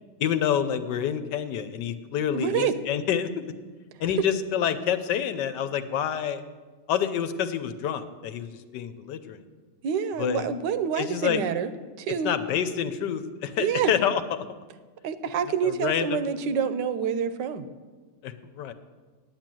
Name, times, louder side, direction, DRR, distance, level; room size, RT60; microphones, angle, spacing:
voice 1, 0.2-3.4 4.0-6.4 6.9-9.4 10.2-10.4 11.0-11.4 12.2-14.2 15.6-16.2 18.2-18.7, left 9 dB, 80° left, 10 dB, 1.3 m, -28 dB
voice 2, 2.3-2.7 9.8-11.7 12.0-12.3 13.6-13.9 15.0-17.7, right 7 dB, 80° right, 12 dB, 1.3 m, -27 dB
9.7 x 9.1 x 7.6 m, 1.4 s
omnidirectional pair, 1.9 m